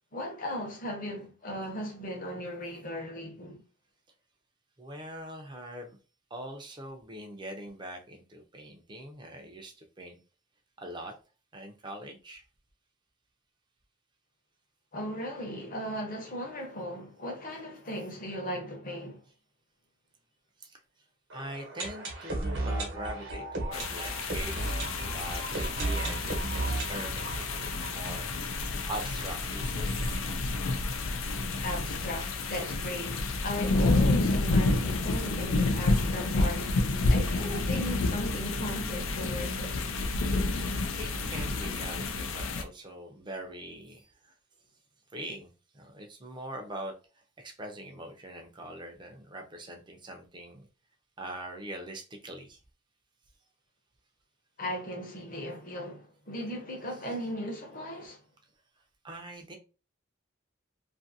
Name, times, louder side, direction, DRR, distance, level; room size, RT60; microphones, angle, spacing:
voice 1, 0.1-3.6 14.9-19.2 31.6-36.8 37.1-39.8 54.6-58.2, equal, 45° left, 0.8 m, -37 dB
voice 2, 4.8-6.0 6.3-10.2 10.8-11.1 11.5-12.4 20.6-20.8 21.3-28.3 28.8-30.1 40.9-44.3 45.1-46.9 47.4-50.7 51.2-52.6 59.0-59.6, right 1 dB, 25° right, 0.5 m, -42 dB
sound 1, 21.3-29.1 29.3-29.4 29.6-29.7 30.3-30.4, right 2 dB, 65° right, 1.0 m, -35 dB
sound 2, 23.7-42.6, left 2 dB, 85° left, 0.5 m, -29 dB
2.7 x 2.6 x 2.6 m
head